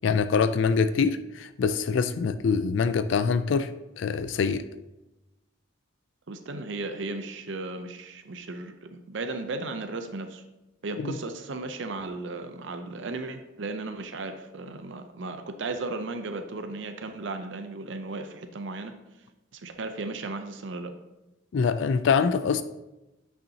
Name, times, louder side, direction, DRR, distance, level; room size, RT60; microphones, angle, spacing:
voice 1, 0.0-4.7 11.0-11.1 21.5-22.6, left 5 dB, 70° left, 11 dB, 0.3 m, -24 dB
voice 2, 6.3-10.4 10.8-18.9 19.5-20.9, right 3 dB, 65° right, 7 dB, 0.6 m, -35 dB
9.0 x 5.6 x 2.8 m, 0.99 s
head